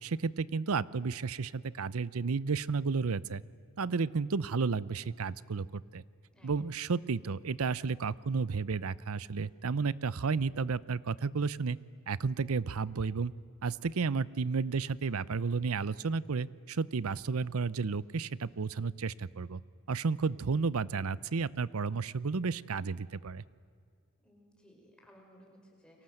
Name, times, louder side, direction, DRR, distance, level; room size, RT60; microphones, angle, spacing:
voice 1, 0.0-3.4 3.8-6.0 6.4-11.8 12.1-13.3 13.6-19.6 19.9-23.4, right 4 dB, 75° right, 20 dB, 0.6 m, -32 dB
voice 2, 6.3-6.7 24.2-26.0, equal, 5° left, 0 dB, 5.6 m, -60 dB
30.0 x 23.5 x 7.9 m, 2.2 s
head